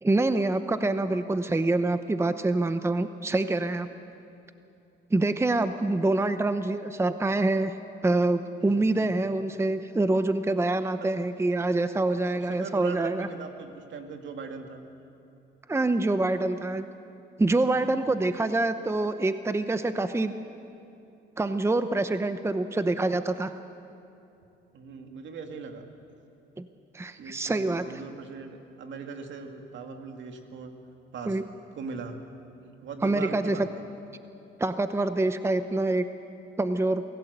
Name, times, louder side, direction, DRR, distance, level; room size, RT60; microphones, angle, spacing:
voice 1, 0.0-3.9 5.1-7.7 8.0-13.3 15.7-16.8 17.4-20.3 21.4-23.5 26.6-26.7 26.9-28.0 31.3-31.4 33.0-33.7 34.6-36.1 36.6-37.0, right 2 dB, 15° right, 10 dB, 0.8 m, -26 dB
voice 2, 12.3-14.8 24.7-25.9 27.2-30.7 31.1-31.4 31.7-32.2 32.8-33.6, right 5 dB, 70° right, 5 dB, 2.3 m, -39 dB
24.5 x 16.0 x 8.0 m, 2.8 s
cardioid pair, 90°, 20 cm